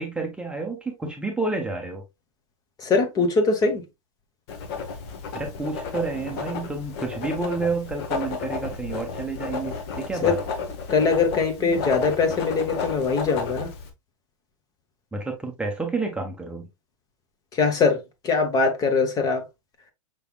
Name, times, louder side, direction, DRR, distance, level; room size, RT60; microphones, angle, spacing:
voice 1, 0.0-2.0 5.3-10.4 15.1-16.7, right 3 dB, 5° right, 0.8 m, -30 dB
voice 2, 2.8-3.8 10.2-10.4 10.9-13.7 17.5-18.0 18.2-19.4, left 4 dB, 20° left, 1.0 m, -22 dB
Writing, 4.5-13.9, left 5 dB, 45° left, 1.2 m, -32 dB
6.0 x 3.4 x 2.3 m
hypercardioid pair, 115°, 17 cm